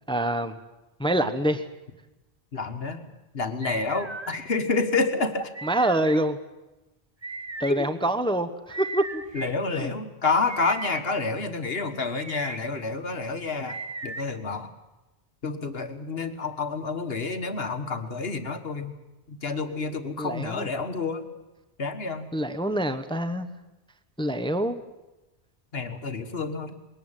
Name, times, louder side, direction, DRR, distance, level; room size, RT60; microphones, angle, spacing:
voice 1, 0.1-0.6 1.0-1.6 5.6-6.4 7.6-9.2 9.8-9.9 20.2-20.7 22.3-23.5 24.2-24.8, right 1 dB, 5° left, 10 dB, 0.9 m, -26 dB
voice 2, 2.5-5.5 7.7-7.9 9.3-14.7 15.4-18.9 19.3-21.3 21.8-22.3 25.7-26.7, left 3 dB, 65° left, 8 dB, 1.7 m, -29 dB
sound 1, 3.6-4.4 5.5-6.2 7.2-7.7 8.7-9.5 10.5-11.0 12.1-12.6 13.7-14.3, right 3 dB, 25° right, 0.9 m, -36 dB
21.0 x 18.0 x 9.0 m, 1.0 s
omnidirectional pair, 1.1 m